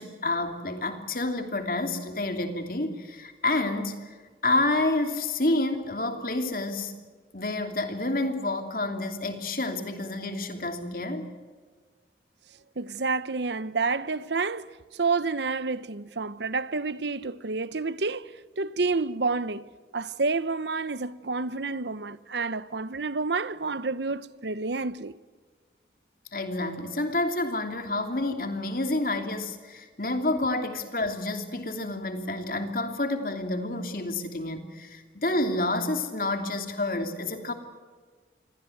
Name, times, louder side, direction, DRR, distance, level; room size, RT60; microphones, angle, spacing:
voice 1, 0.0-4.1 4.4-6.9 7.3-11.3 26.3-37.5, left 2 dB, 50° left, 2.9 m, -29 dB
voice 2, 12.8-14.7 14.9-19.7 19.9-25.2, right 4 dB, 75° right, 0.9 m, -29 dB
27.5 x 22.5 x 8.0 m
head